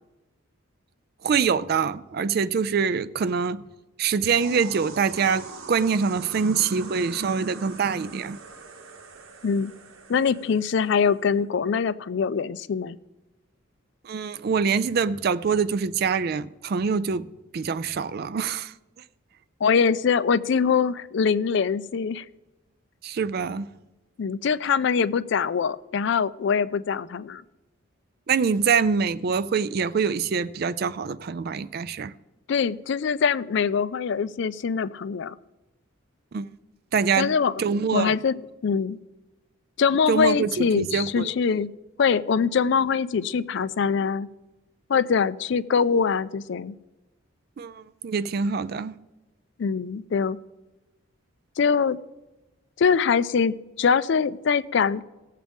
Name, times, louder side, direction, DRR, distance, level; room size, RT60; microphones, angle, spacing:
voice 1, 1.2-3.6 4.0-8.4 14.0-17.2 17.5-18.7 23.0-23.7 28.3-32.1 36.3-36.5 36.9-37.3 37.6-38.2 40.1-41.3 47.6-48.9, right 5 dB, 50° right, 0.4 m, -25 dB
sound 1, 4.3-11.3, right 4 dB, 80° right, 1.1 m, -43 dB
voice 2, 10.1-13.0 19.6-22.2 24.2-27.4 32.5-35.4 37.2-37.5 37.9-39.0 39.8-41.7 42.0-44.3 44.9-46.7 49.6-50.4 51.6-52.0 52.8-55.0, left 6 dB, 55° left, 0.4 m, -23 dB
18.5 x 7.4 x 3.5 m
head